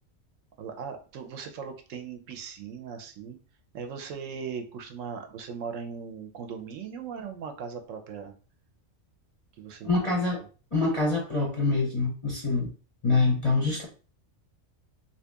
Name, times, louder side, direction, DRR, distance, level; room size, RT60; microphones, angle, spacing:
voice 1, 0.6-3.4 3.7-8.3 9.6-9.9, right 6 dB, 75° right, 6 dB, 1.0 m, -38 dB
voice 2, 9.8-10.4 10.7-12.7 13.0-13.9, left 3 dB, 35° left, -3 dB, 0.6 m, -25 dB
2.8 x 2.8 x 3.4 m, 0.36 s
omnidirectional pair, 1.4 m